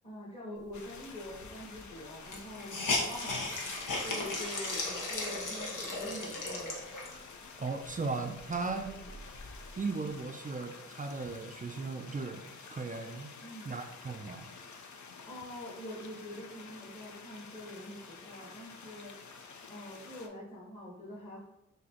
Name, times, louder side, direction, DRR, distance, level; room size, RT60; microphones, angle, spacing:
voice 1, 0.0-3.8 4.0-6.9 8.8-8.9 13.4-13.7 15.3-21.4, left 1 dB, 20° left, -7 dB, 1.2 m, -45 dB
sound 1, 0.7-20.3, left 5 dB, 65° left, 0.6 m, -50 dB
Hiss, 1.4-1.5 1.7-1.8 2.3-7.3 7.9-8.0 8.3-9.7, left 2 dB, 80° left, 1.1 m, -36 dB
voice 2, 7.6-8.9 9.8-13.3 13.7-14.5, right 4 dB, 25° right, 5 dB, 0.3 m, -37 dB
6.1 x 2.8 x 2.9 m, 0.89 s
wide cardioid pair, 105°, 32 cm